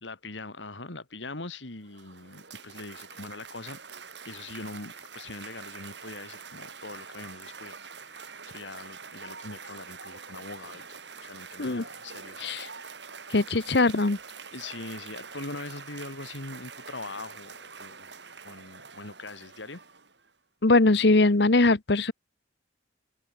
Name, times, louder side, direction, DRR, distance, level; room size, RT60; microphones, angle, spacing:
voice 1, 0.0-3.8 4.3-13.0 14.5-18.1 18.4-19.8, left 3 dB, 85° left, 2.6 m, -42 dB
Cheering / Applause, 1.7-20.3, right 5 dB, 70° right, 6.8 m, -45 dB
voice 2, 13.3-14.2 20.6-22.1, left 2 dB, 65° left, 1.1 m, -21 dB
head